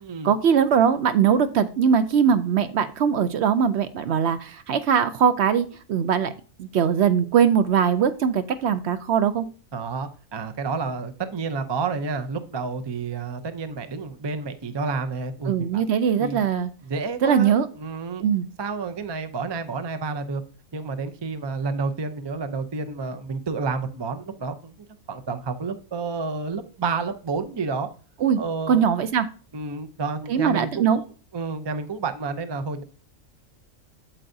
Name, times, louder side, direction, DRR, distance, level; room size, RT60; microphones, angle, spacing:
voice 1, 0.2-6.3 6.6-9.5 15.5-16.7 17.2-17.7 18.2-18.5 28.2-28.4 28.7-29.3 30.3-31.0, right 7 dB, 65° right, 11 dB, 0.8 m, -21 dB
voice 2, 9.7-15.8 16.2-16.4 16.8-18.2 18.6-20.4 20.7-24.7 25.1-27.9 28.4-28.9 29.5-31.0 31.3-32.8, right 4 dB, 45° right, 8 dB, 0.3 m, -30 dB
8.5 x 7.6 x 2.6 m, 0.38 s
omnidirectional pair, 1.4 m